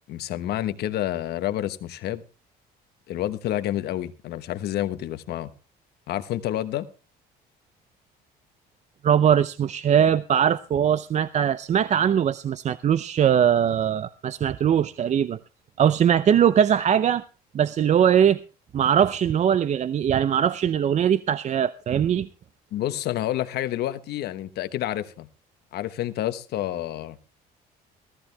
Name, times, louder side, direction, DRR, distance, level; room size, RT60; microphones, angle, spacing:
voice 1, 0.1-2.2 3.1-5.5 6.1-6.9 22.7-25.3 25.7-27.2, left 13 dB, 70° left, 1.2 m, -29 dB
voice 2, 9.0-15.4 15.8-17.2 17.5-18.4 18.7-22.3, right 9 dB, 45° right, 0.6 m, -21 dB
16.0 x 14.5 x 3.4 m
cardioid pair, 110°, 17 cm